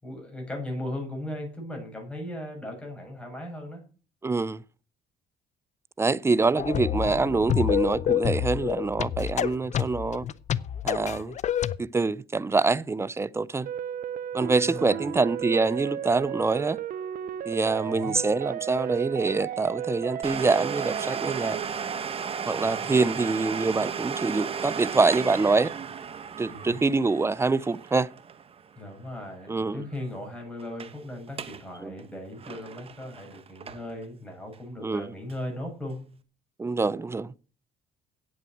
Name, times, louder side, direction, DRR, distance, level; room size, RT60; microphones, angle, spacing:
voice 1, 0.0-3.8 14.3-15.2 17.7-18.1 22.6-23.2 26.5-26.8 28.8-36.0, left 1 dB, 5° left, 7.3 m, -38 dB
voice 2, 4.2-4.6 6.0-10.3 10.8-11.4 11.8-13.7 14.3-16.8 17.5-21.6 22.5-25.7 26.4-28.1 29.5-29.8 31.8-31.9 34.8-35.1 36.6-37.3, right 3 dB, 15° right, 0.5 m, -25 dB
sound 1, 6.6-11.8, left 10 dB, 45° left, 0.6 m, -28 dB
sound 2, 13.7-21.7, right 10 dB, 55° right, 0.7 m, -34 dB
Domestic sounds home sounds, 20.2-29.7 29.9-30.0 30.6-31.0 31.3-31.6 32.0-34.0 34.5-34.6 35.3-35.4, right 6 dB, 35° right, 1.0 m, -35 dB
9.0 x 8.6 x 7.8 m
cardioid pair, 110°, 17 cm